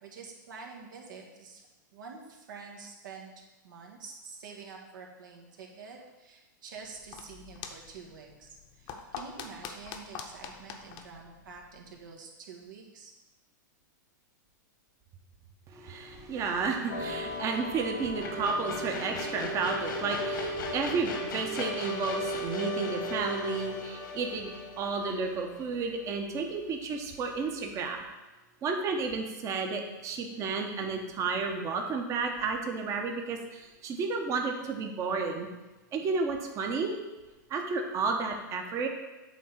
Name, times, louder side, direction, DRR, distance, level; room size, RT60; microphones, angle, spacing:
voice 1, 0.0-1.7 1.9-13.1, right 5 dB, 75° right, 0 dB, 1.7 m, -47 dB
sound 1, 6.8-12.1, left 6 dB, 40° left, 0.8 m, -45 dB
voice 2, 15.7-28.0 28.6-35.5 35.9-37.0 37.5-38.9, right 4 dB, 30° right, 3 dB, 1.0 m, -32 dB
sound 2, 16.9-26.1, left 1 dB, 80° left, 1.5 m, -36 dB
8.4 x 3.6 x 5.8 m, 1.1 s
hypercardioid pair, 125°, 11 cm